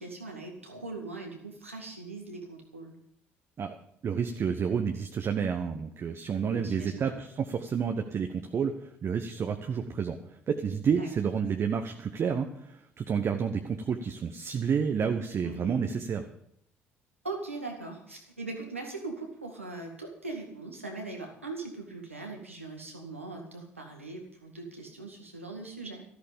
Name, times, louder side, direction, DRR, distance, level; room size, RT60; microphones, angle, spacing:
voice 1, 0.0-2.9 6.4-7.1 11.0-11.1 15.4-15.9 17.2-26.0, right 3 dB, 85° right, 1 dB, 2.1 m, -40 dB
voice 2, 4.0-16.2, right 6 dB, 40° right, 5 dB, 1.1 m, -30 dB
13.5 x 13.0 x 5.3 m, 0.69 s
figure-of-eight pair, 50°, 7 cm